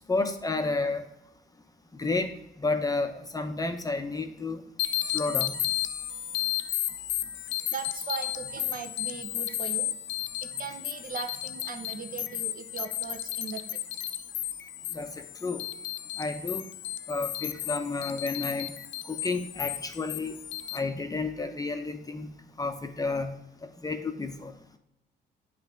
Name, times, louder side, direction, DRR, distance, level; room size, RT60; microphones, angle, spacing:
voice 1, 0.1-1.0 1.9-2.3 2.6-4.6 5.1-5.6 14.9-15.6 16.2-16.7 17.1-18.7 19.1-20.4 20.7-22.3 22.6-23.4 23.8-24.5, left 3 dB, 20° left, 6 dB, 0.6 m, -31 dB
sound 1, 4.8-20.8, left 13 dB, 70° left, 0.5 m, -33 dB
voice 2, 7.7-9.9 10.4-13.8, right 6 dB, 45° right, 7 dB, 0.8 m, -39 dB
8.1 x 3.3 x 5.0 m, 0.86 s
cardioid pair, 90°, 20 cm